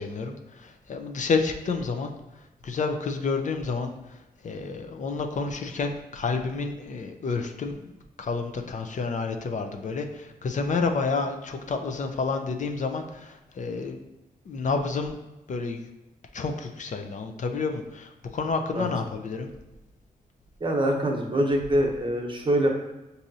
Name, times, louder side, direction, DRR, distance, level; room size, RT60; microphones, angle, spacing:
voice 1, 0.0-2.1 2.6-7.9 8.2-14.0 14.5-15.2 15.5-15.8 16.3-19.5, left 4 dB, 55° left, 5 dB, 0.5 m, -29 dB
voice 2, 20.6-22.7, right 1 dB, 35° right, 2 dB, 0.9 m, -24 dB
6.0 x 2.7 x 2.7 m, 1.0 s
cardioid pair, 65°, 15 cm